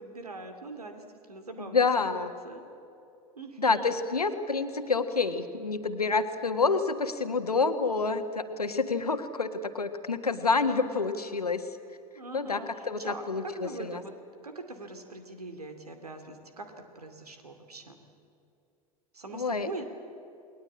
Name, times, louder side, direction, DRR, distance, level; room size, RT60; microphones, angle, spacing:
voice 1, 0.0-2.6 3.4-3.9 12.1-14.1 14.4-18.0 19.1-19.8, right 2 dB, 80° right, 6 dB, 2.7 m, -42 dB
voice 2, 1.6-2.3 3.6-11.7 12.3-14.0 19.3-19.8, left 4 dB, 80° left, 8 dB, 1.6 m, -28 dB
29.0 x 21.0 x 8.5 m, 2.6 s
figure-of-eight pair, 85°, 19 cm